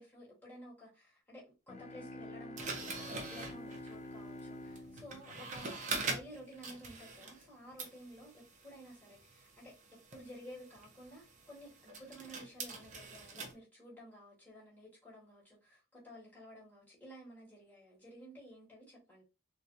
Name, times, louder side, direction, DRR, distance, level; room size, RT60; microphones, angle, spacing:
voice 1, 0.0-9.7 10.1-19.2, equal, 10° left, 2.3 m, -53 dB
sound 1, 1.7-6.4, left 1 dB, 30° left, 0.4 m, -48 dB
sound 2, 2.6-7.5 7.8-13.5, right 3 dB, 35° right, 0.9 m, -44 dB
4.2 x 3.2 x 2.8 m
head